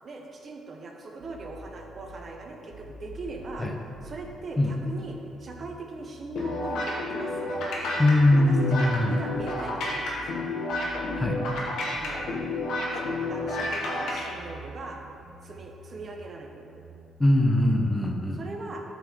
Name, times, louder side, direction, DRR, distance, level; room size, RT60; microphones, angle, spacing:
voice 1, 0.0-3.7 4.0-10.5 11.9-12.4 12.9-13.0 13.3-15.0 15.4-16.8 18.4-18.8, right 3 dB, 45° right, 2 dB, 0.9 m, -40 dB
sound 1, 1.2-17.2, right 2 dB, 85° right, 0.8 m, -48 dB
sound 2, 6.4-14.2, left 2 dB, 80° left, 1.4 m, -30 dB
voice 2, 8.0-9.2 11.2-11.4 17.2-18.5, left 1 dB, 15° left, 3 dB, 0.6 m, -21 dB
7.8 x 5.7 x 3.6 m, 2.5 s
cardioid pair, 85°, 0 cm